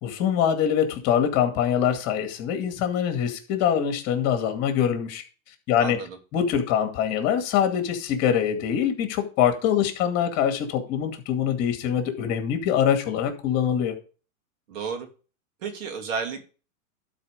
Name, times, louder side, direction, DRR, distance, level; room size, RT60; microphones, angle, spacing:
voice 1, 0.0-5.2 5.7-6.0 6.3-13.9, left 9 dB, 35° left, 6 dB, 2.3 m, -24 dB
voice 2, 5.8-6.2 14.7-15.1 15.6-16.5, right 5 dB, 70° right, 4 dB, 3.1 m, -32 dB
12.0 x 4.8 x 5.2 m, 0.35 s
hypercardioid pair, 140°, 41 cm